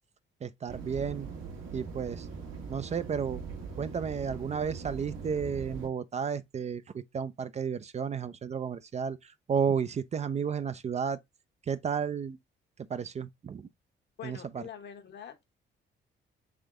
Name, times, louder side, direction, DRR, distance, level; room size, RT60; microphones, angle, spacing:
voice 1, 0.4-1.3 1.7-2.3 2.7-3.4 3.8-11.2 11.6-12.4 12.8-13.7 14.2-14.6, right 7 dB, 35° right, 0.4 m, -32 dB
sound 1, 0.7-5.9, right 5 dB, 80° right, 1.4 m, -41 dB
voice 2, 14.2-15.6, left 9 dB, 60° left, 1.0 m, -45 dB
3.6 x 3.4 x 3.6 m
cardioid pair, 90°, 20 cm